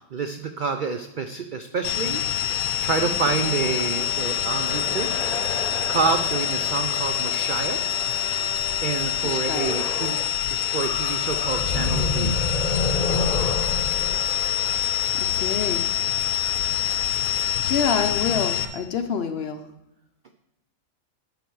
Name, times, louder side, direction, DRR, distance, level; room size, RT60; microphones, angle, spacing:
voice 1, 0.1-5.1 5.9-7.8 8.8-10.2 10.5-12.4, right 5 dB, 65° right, 6 dB, 0.4 m, -28 dB
sound 1, 1.8-18.7, left 10 dB, 85° left, 1.1 m, -26 dB
Wind instrument woodwind instrument, 3.4-10.1, right 4 dB, 50° right, 1.0 m, -41 dB
sound 2, 4.6-8.5 9.6-10.3 10.6-15.5, left 3 dB, 35° left, 1.0 m, -30 dB
voice 2, 9.2-9.7 15.2-15.9 17.6-19.6, left 6 dB, 60° left, 7 dB, 0.7 m, -27 dB
11.5 x 4.9 x 4.6 m, 0.84 s
omnidirectional pair, 1.4 m